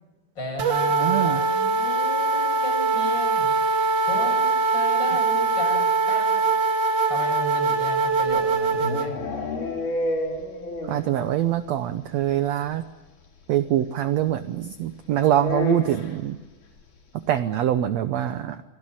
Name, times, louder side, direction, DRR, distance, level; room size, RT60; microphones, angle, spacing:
voice 1, 0.3-3.6 4.0-6.4 7.1-9.2, left 1 dB, 30° left, 1 dB, 8.1 m, -34 dB
sound 1, 0.6-9.1, right 4 dB, 50° right, 1.6 m, -22 dB
voice 2, 1.0-1.4 10.9-12.8 13.5-16.4 17.3-18.6, right 11 dB, 75° right, 11 dB, 1.6 m, -24 dB
sound 2, 8.1-11.2 11.4-11.5 11.8-11.9 12.2-12.3 13.6-13.7 15.4-16.2, left 2 dB, 55° left, 5.5 m, -30 dB
27.5 x 17.5 x 8.9 m, 1.2 s
omnidirectional pair, 4.2 m